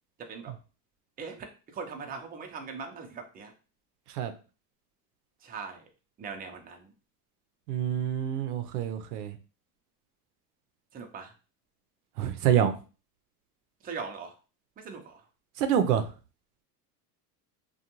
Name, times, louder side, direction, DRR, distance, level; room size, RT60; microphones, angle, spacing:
voice 1, 0.2-0.5 1.2-1.5 1.7-3.5 5.4-5.8 6.2-6.9 10.9-11.3 13.8-14.3 14.8-15.3, right 5 dB, 20° right, 3 dB, 0.5 m, -40 dB
voice 2, 7.7-9.4 12.2-12.8 15.6-16.1, right 9 dB, 85° right, 8 dB, 0.6 m, -27 dB
2.5 x 2.2 x 2.9 m, 0.34 s
supercardioid pair, 105°, 45 cm